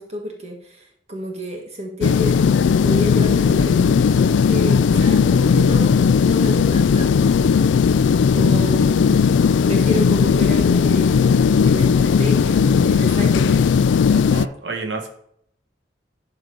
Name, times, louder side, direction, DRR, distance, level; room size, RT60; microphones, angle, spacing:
voice 1, 0.0-2.4 2.8-7.2 8.3-9.2 9.6-13.6, equal, 35° right, 1 dB, 1.5 m, -30 dB
sound 1, 2.0-14.5, left 6 dB, 80° left, 0.3 m, -16 dB
voice 2, 14.1-15.1, right 3 dB, 75° right, 2 dB, 1.7 m, -29 dB
11.5 x 4.8 x 5.2 m, 0.71 s
head